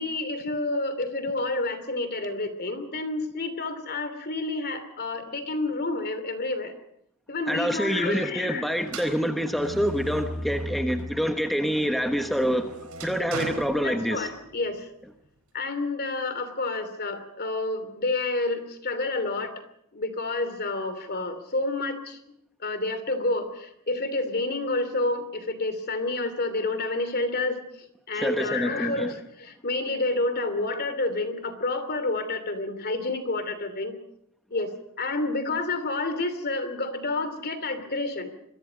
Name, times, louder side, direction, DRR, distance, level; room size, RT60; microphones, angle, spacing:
voice 1, 0.0-6.7 7.3-8.7 13.8-14.9 15.5-19.5 19.9-22.2 22.6-27.6 28.1-33.9 34.5-38.3, left 2 dB, 45° left, 10 dB, 2.9 m, -29 dB
voice 2, 7.5-12.7 13.0-14.3 28.1-29.1, equal, ahead, 5 dB, 1.2 m, -26 dB
sound 1, 8.8-11.3 11.7-14.5, right 1 dB, 90° right, 4.4 m, -37 dB
26.5 x 22.5 x 5.2 m, 0.75 s
head